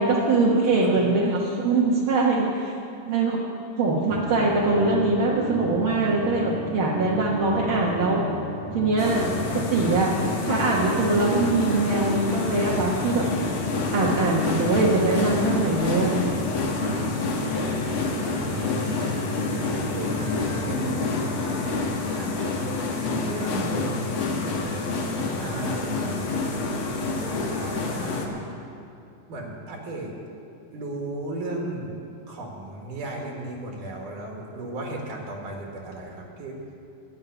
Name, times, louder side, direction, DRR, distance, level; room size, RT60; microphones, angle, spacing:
voice 1, 0.0-2.7 3.1-3.4 3.8-8.2 8.7-10.1 10.4-13.2 13.9-16.3, right 3 dB, 55° right, -5 dB, 1.5 m, -22 dB
sound 1, 4.1-21.8, left 2 dB, 10° right, 1.7 m, -34 dB
sound 2, 9.0-28.3, left 3 dB, 55° left, 1.7 m, -28 dB
voice 2, 17.7-18.6 19.0-22.8 23.2-24.2 25.4-26.3 27.2-28.6 29.3-30.1 30.7-31.9 32.3-36.6, right 2 dB, 80° right, 0 dB, 3.2 m, -36 dB
12.0 x 7.2 x 9.8 m, 2.6 s
omnidirectional pair, 3.7 m